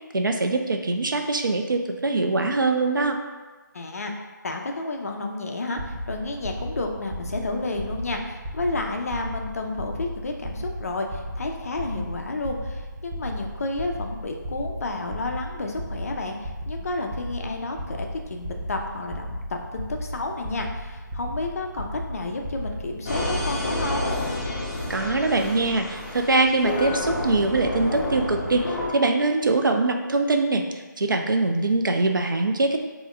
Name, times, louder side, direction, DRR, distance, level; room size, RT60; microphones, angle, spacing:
voice 1, 0.1-3.2 24.9-32.8, right 2 dB, 80° right, 4 dB, 0.5 m, -23 dB
voice 2, 3.7-24.1, left 2 dB, 50° left, 3 dB, 0.4 m, -31 dB
sound 1, 5.8-24.2, equal, 20° right, 0.4 m, -35 dB
sound 2, 23.1-28.9, left 1 dB, 25° left, 0.8 m, -29 dB
3.5 x 2.1 x 3.4 m, 1.3 s
figure-of-eight pair, 155°, 11 cm